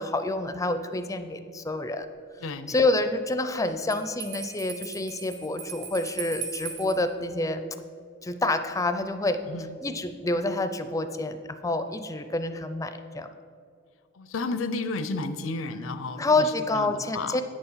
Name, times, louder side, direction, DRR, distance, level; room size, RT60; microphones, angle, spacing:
voice 1, 0.0-2.1 2.7-7.6 8.2-9.4 9.8-13.3 16.2-17.4, left 2 dB, 15° left, 9 dB, 0.4 m, -28 dB
voice 2, 2.4-2.8 9.5-9.7 14.2-17.4, left 3 dB, 80° left, 11 dB, 0.6 m, -32 dB
Bell, 3.9-7.0, right 5 dB, 65° right, 2.1 m, -38 dB
8.9 x 6.9 x 5.6 m, 2.3 s
head